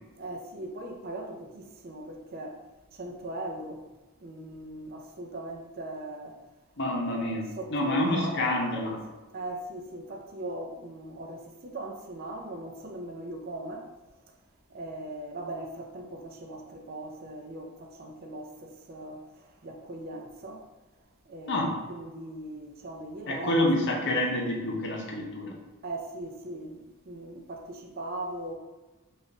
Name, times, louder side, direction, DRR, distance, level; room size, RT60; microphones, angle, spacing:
voice 1, 0.1-2.6 2.9-3.8 4.2-6.4 7.0-13.9 14.7-19.2 19.6-20.6 21.3-24.0 25.8-28.5, right 1 dB, 45° right, 0.5 m, -39 dB
voice 2, 6.8-9.0 21.5-21.7 23.3-25.5, left 1 dB, 55° left, 0.8 m, -28 dB
3.9 x 2.5 x 3.5 m
head